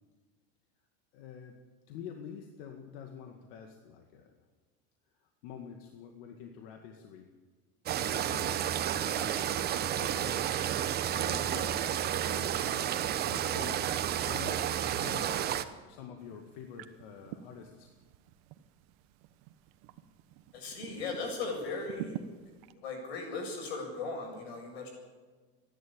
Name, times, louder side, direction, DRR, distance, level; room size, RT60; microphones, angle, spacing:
voice 1, 1.1-1.6 1.9-4.3 5.4-7.3 8.0-10.5 11.1-13.9 14.2-14.6 15.0-15.5 15.9-17.9, left 7 dB, 65° left, 3 dB, 2.0 m, -47 dB
sound 1, 7.9-15.6, right 10 dB, 30° right, 1.0 m, -31 dB
sound 2, 16.2-22.7, right 10 dB, 60° right, 1.2 m, -48 dB
voice 2, 20.5-22.2 22.8-24.9, left 3 dB, 85° left, 2 dB, 7.6 m, -37 dB
29.0 x 11.0 x 8.7 m, 1.4 s
supercardioid pair, 130°, 30 cm